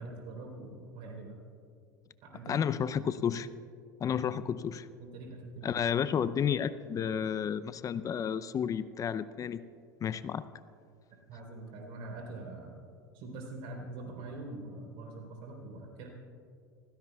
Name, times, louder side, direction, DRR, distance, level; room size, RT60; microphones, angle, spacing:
voice 1, 0.0-1.3 2.2-3.1 4.1-4.2 5.0-5.8 11.3-12.8 13.1-16.1, right 2 dB, 60° right, 0 dB, 3.9 m, -44 dB
voice 2, 2.5-3.5 4.0-4.9 5.6-9.6 10.0-10.4, left 8 dB, 35° left, 15 dB, 0.6 m, -31 dB
29.0 x 16.0 x 2.4 m, 2.4 s
hypercardioid pair, 85°, 10 cm